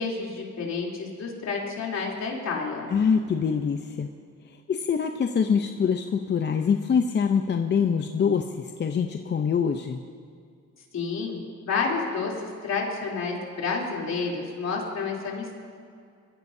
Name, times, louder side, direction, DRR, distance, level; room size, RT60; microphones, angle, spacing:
voice 1, 0.0-2.9 10.9-12.3 12.6-15.5, left 4 dB, 60° left, -2 dB, 3.4 m, -30 dB
voice 2, 2.9-4.1 4.5-10.0, left 6 dB, 35° left, 5 dB, 0.7 m, -25 dB
23.0 x 14.5 x 2.7 m, 2.3 s
cardioid pair, 90°, 30 cm